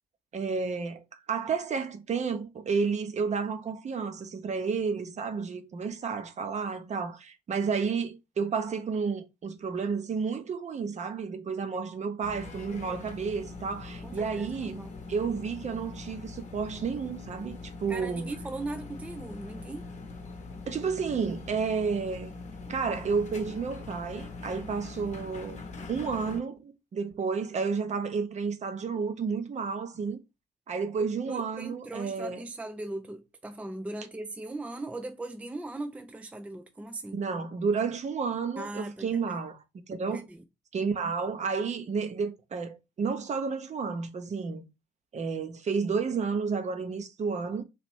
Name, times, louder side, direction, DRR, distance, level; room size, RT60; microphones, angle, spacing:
voice 1, 0.3-18.3 20.7-22.3 22.7-25.6 25.9-30.2 30.7-32.4 37.1-39.6 39.9-40.2 40.7-44.7 45.1-47.6, right 5 dB, 35° right, 0.8 m, -31 dB
sound 1, 12.2-26.4, left 3 dB, 35° left, 1.0 m, -42 dB
voice 2, 14.0-14.9 17.9-19.9 31.3-37.2 38.6-39.4 40.1-40.4, right 2 dB, 5° right, 0.5 m, -39 dB
3.3 x 3.0 x 4.4 m
figure-of-eight pair, 45°, 20 cm